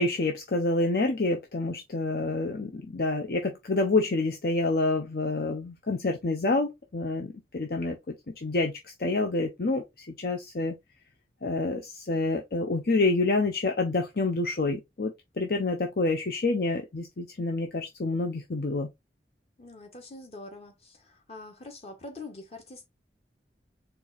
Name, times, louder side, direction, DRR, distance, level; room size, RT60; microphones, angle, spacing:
voice 1, 0.0-10.8 11.4-18.9, left 2 dB, 60° left, 0.7 m, -28 dB
voice 2, 19.6-22.9, left 2 dB, 35° left, 1.2 m, -44 dB
4.5 x 2.6 x 3.9 m
head